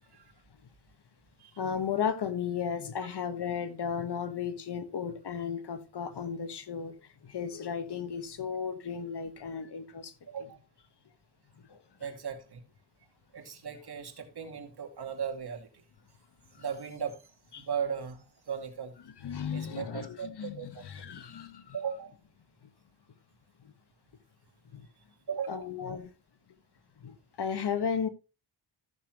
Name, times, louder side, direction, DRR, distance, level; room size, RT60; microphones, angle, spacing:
voice 1, 1.6-6.9 7.2-10.1 11.7-11.8 17.5-17.7 19.2-21.7 24.7-24.9 25.5-26.1 27.0-28.1, left 7 dB, 65° left, 1.4 m, -34 dB
voice 2, 10.3-10.6 12.0-12.6 13.3-15.8 16.6-17.2 17.6-18.9 19.5-20.8 21.7-22.1 25.3-25.7, right 7 dB, 60° right, 2.4 m, -37 dB
14.5 x 7.0 x 3.1 m
cardioid pair, 90°, 44 cm